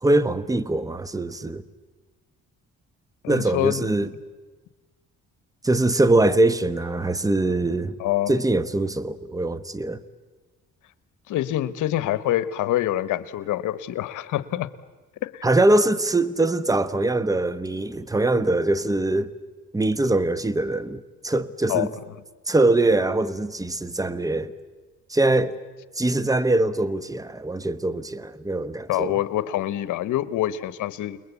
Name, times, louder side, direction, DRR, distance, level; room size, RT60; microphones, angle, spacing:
voice 1, 0.0-1.6 3.3-4.1 5.6-7.9 8.3-10.0 15.4-19.3 19.7-21.9 22.5-24.5 25.1-25.5 26.0-29.2, right 2 dB, 10° right, 1.1 m, -22 dB
voice 2, 3.2-3.8 8.0-8.4 11.3-14.7 15.2-15.4 21.7-21.9 28.9-31.2, left 13 dB, 85° left, 1.1 m, -26 dB
29.5 x 21.0 x 8.2 m
cardioid pair, 90°, 30 cm